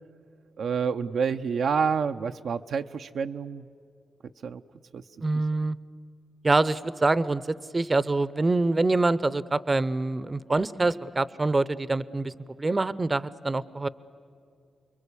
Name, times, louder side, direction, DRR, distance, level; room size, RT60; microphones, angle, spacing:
voice 1, 0.6-3.7 4.4-4.6 4.9-5.0 5.6-5.8, right 6 dB, 80° right, 6 dB, 0.6 m, -28 dB
voice 2, 5.2-5.8 6.4-12.3 12.6-13.9, right 2 dB, 30° right, 17 dB, 0.7 m, -25 dB
29.5 x 22.0 x 8.5 m, 2.4 s
cardioid pair, 70°, 0 cm